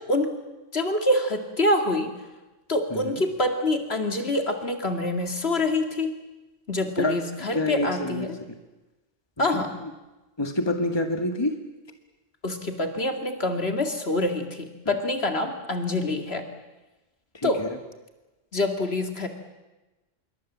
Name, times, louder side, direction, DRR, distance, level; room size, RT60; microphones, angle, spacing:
voice 1, 0.7-2.1 2.7-6.2 6.7-8.3 9.4-9.7 12.4-16.4 17.4-17.6 18.5-19.3, left 1 dB, 55° left, 5 dB, 2.5 m, -26 dB
voice 2, 2.9-3.2 7.0-7.2 7.5-8.3 9.4-9.9 10.4-11.6 17.3-17.8, left 2 dB, 20° left, 6 dB, 1.9 m, -27 dB
26.5 x 22.5 x 7.5 m, 1.1 s
omnidirectional pair, 1.3 m